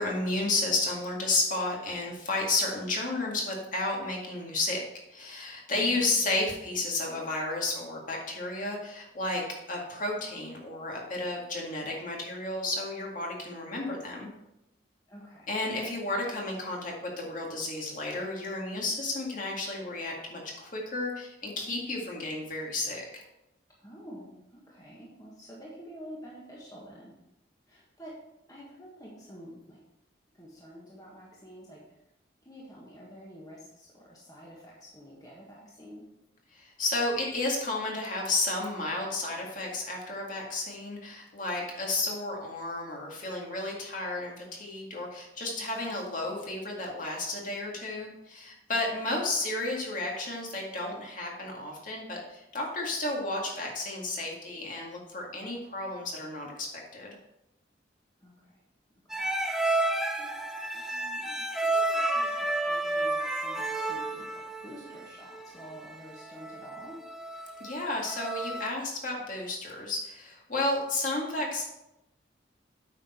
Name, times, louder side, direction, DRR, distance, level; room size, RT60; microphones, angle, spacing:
voice 1, 0.0-4.8 5.1-14.3 15.5-23.2 36.5-56.7 56.9-57.2 67.6-71.7, left 2 dB, 45° left, -1 dB, 2.1 m, -32 dB
voice 2, 5.7-6.1 15.1-15.5 23.8-27.1 27.7-28.2 28.5-29.8 30.3-32.0 32.4-36.1 45.6-46.1 58.2-58.6 59.1-59.3 59.8-60.4 60.7-67.1, equal, 20° left, -4 dB, 1.6 m, -48 dB
sound 1, 59.1-68.7, right 2 dB, ahead, 0.7 m, -31 dB
8.9 x 6.1 x 4.5 m, 0.87 s
head